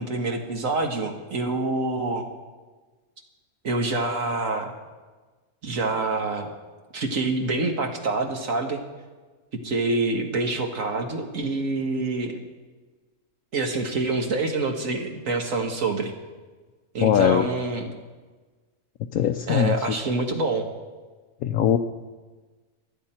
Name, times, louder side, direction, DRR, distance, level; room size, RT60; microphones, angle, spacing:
voice 1, 0.0-2.3 3.6-4.7 5.6-6.5 6.9-8.8 9.6-12.3 13.5-16.1 16.9-17.9 19.5-20.7, right 3 dB, 60° right, 3 dB, 1.8 m, -26 dB
voice 2, 17.0-17.5 19.1-20.0 21.4-21.8, left 10 dB, 70° left, 5 dB, 1.1 m, -21 dB
26.5 x 9.4 x 4.4 m, 1.3 s
omnidirectional pair, 1.6 m